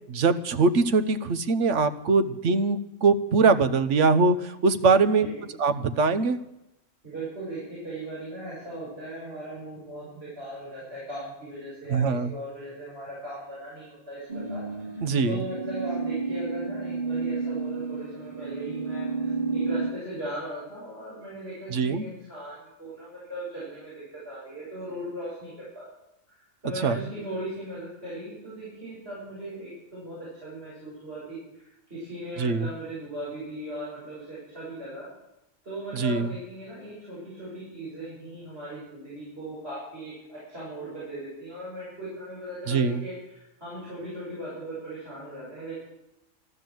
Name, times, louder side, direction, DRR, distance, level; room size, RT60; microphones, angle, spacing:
voice 1, 0.1-5.3 5.6-6.4 11.9-12.3 15.0-15.4 21.7-22.0 26.8-27.0 32.4-32.7 35.9-36.3 42.7-43.0, right 4 dB, 65° right, 10 dB, 1.2 m, -22 dB
voice 2, 4.9-5.4 7.0-14.9 15.2-25.9 26.3-35.1 35.6-45.7, right 1 dB, 50° right, -9 dB, 7.3 m, -38 dB
sound 1, 14.3-19.9, right 4 dB, 35° right, 1.1 m, -31 dB
13.5 x 12.5 x 7.8 m, 0.88 s
omnidirectional pair, 1.4 m